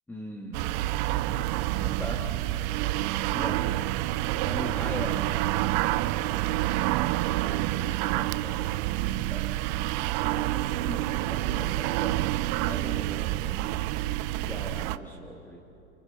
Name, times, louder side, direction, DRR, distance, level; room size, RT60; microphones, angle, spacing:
voice 1, 0.1-0.7 1.8-2.3 3.3-3.7 4.4-5.4 7.2-8.7 9.3-9.6 10.2-12.2 12.6-13.7 14.4-15.6, left 1 dB, 5° left, -2 dB, 2.2 m, -40 dB
sound 1, 0.5-15.0, right 16 dB, 40° right, 0.6 m, -28 dB
29.5 x 26.5 x 6.8 m, 2.8 s
hypercardioid pair, 140°, 34 cm